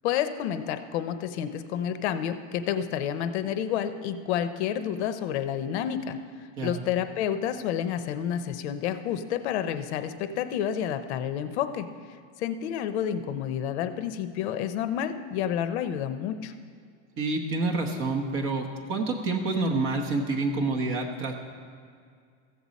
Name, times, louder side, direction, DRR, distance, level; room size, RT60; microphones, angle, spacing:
voice 1, 0.0-6.2 6.6-11.9 12.4-16.5, left 9 dB, 65° left, 10 dB, 0.7 m, -29 dB
voice 2, 17.2-21.3, right 3 dB, 35° right, 3 dB, 1.1 m, -28 dB
14.5 x 7.8 x 4.1 m, 2.2 s
supercardioid pair, 165°, 35 cm